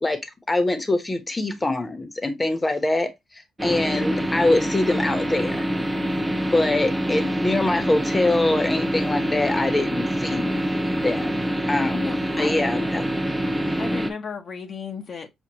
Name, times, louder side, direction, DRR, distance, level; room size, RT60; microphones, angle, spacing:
voice 1, 0.5-5.7 6.5-10.5 11.0-12.1 12.4-13.0, left 2 dB, 20° left, 0.9 m, -24 dB
sound 1, 3.6-14.1, equal, 10° right, 0.7 m, -25 dB
voice 2, 11.9-12.9 13.8-15.3, left 5 dB, 50° left, 0.8 m, -35 dB
6.1 x 2.4 x 2.8 m
cardioid pair, 90°, 0 cm